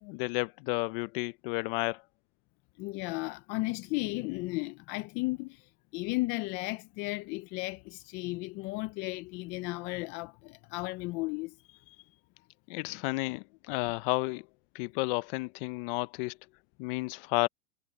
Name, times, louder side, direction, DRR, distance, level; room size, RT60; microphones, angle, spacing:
voice 1, 0.0-2.0 12.7-14.5 14.7-16.4 16.8-17.5, left 25 dB, 45° left, 0.9 m, -32 dB
voice 2, 2.8-12.1 12.9-13.0, left 23 dB, 30° left, 0.4 m, -35 dB
hypercardioid pair, 135°, 39 cm